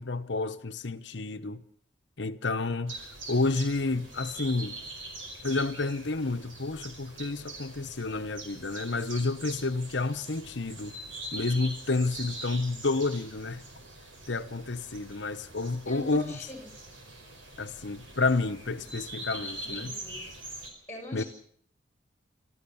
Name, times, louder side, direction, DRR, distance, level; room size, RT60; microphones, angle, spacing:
voice 1, 0.0-1.6 2.2-3.0 3.3-4.8 5.4-10.9 11.3-13.6 14.3-16.3 17.6-19.9 21.1-21.2, left 3 dB, 65° left, 1.1 m, -30 dB
sound 1, 2.9-20.7, right 2 dB, 85° right, 5.0 m, -43 dB
voice 2, 15.8-16.7 19.3-20.2 20.9-21.3, left 1 dB, 15° left, 6.5 m, -42 dB
27.0 x 14.0 x 7.2 m
head